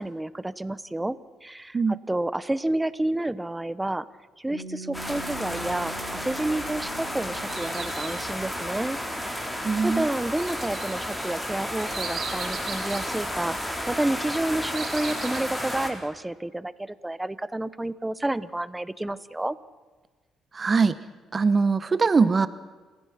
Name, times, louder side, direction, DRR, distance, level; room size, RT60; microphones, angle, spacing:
voice 1, 0.0-4.1 4.4-9.5 9.8-19.6, right 1 dB, 10° right, 16 dB, 0.9 m, -30 dB
Piano, 4.5-11.8, right 2 dB, 35° left, 3.3 m, -45 dB
sound 1, 4.9-15.9, equal, 10° left, 4.0 m, -32 dB
sound 2, 7.4-8.4 10.4-13.1 14.2-15.4, right 6 dB, 55° right, 4.4 m, -38 dB
voice 2, 9.6-10.1 20.5-21.0 21.3-22.5, right 4 dB, 35° right, 15 dB, 0.8 m, -21 dB
29.0 x 15.5 x 5.9 m, 1.3 s
cardioid pair, 90°, 0 cm